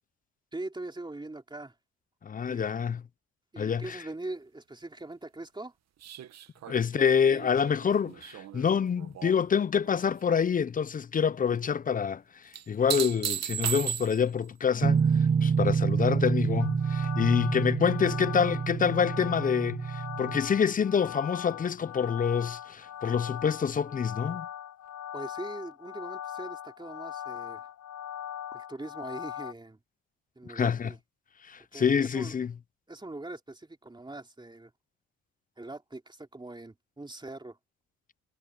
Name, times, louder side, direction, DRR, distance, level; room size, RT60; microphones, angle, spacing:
voice 1, 0.5-1.7 2.5-2.7 3.5-5.7 25.1-27.7 28.5-29.8 30.3-31.0 31.7-32.3 32.9-34.7 35.6-37.6, right 2 dB, 15° right, 3.1 m, -41 dB
voice 2, 2.2-3.0 3.6-4.0 6.7-15.0 15.4-24.5 30.5-30.9 31.4-32.5, left 7 dB, 30° left, 0.5 m, -27 dB
sound 1, 6.0-9.5 9.8-10.4 12.5-14.4 17.0-17.1, right 11 dB, 60° right, 1.0 m, -36 dB
sound 2, 14.8-20.4, right 6 dB, 35° right, 1.2 m, -27 dB
sound 3, 16.6-29.5, left 10 dB, 70° left, 6.7 m, -40 dB
cardioid pair, 90°, 30 cm